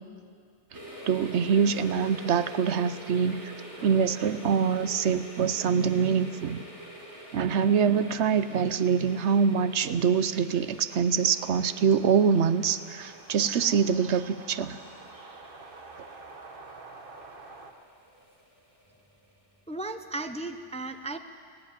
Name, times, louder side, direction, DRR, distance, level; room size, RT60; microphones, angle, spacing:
sound 1, 0.7-19.4 19.7-19.8, equal, 15° right, 4.9 m, -46 dB
voice 1, 1.1-3.5 3.8-6.6 7.3-14.8, right 6 dB, 75° right, 13 dB, 1.0 m, -24 dB
sound 2, 11.2-17.7, right 3 dB, 50° right, 1.5 m, -48 dB
voice 2, 19.7-21.2, right 2 dB, 10° left, 8 dB, 0.5 m, -35 dB
18.5 x 16.5 x 9.9 m, 2.3 s
omnidirectional pair, 1.2 m